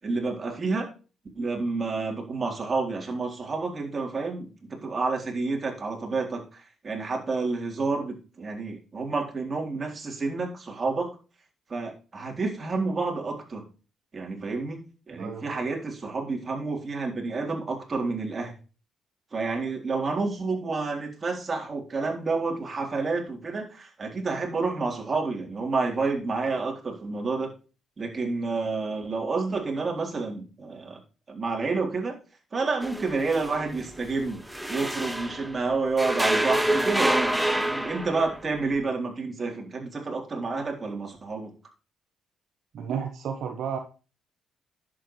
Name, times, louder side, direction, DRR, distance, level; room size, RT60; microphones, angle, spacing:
voice 1, 0.0-0.9 1.4-11.1 11.7-13.7 14.1-18.5 19.3-27.5 28.0-31.0 31.3-32.2 32.5-34.4 34.7-41.5, right 3 dB, 35° right, 1 dB, 3.8 m, -29 dB
voice 2, 15.1-15.6 42.7-43.8, right 7 dB, 70° right, 5 dB, 1.2 m, -32 dB
sound 1, 32.8-35.6 36.0-38.5, right 1 dB, 5° right, 1.2 m, -27 dB
11.0 x 7.9 x 3.3 m, 0.34 s
cardioid pair, 90°, 0 cm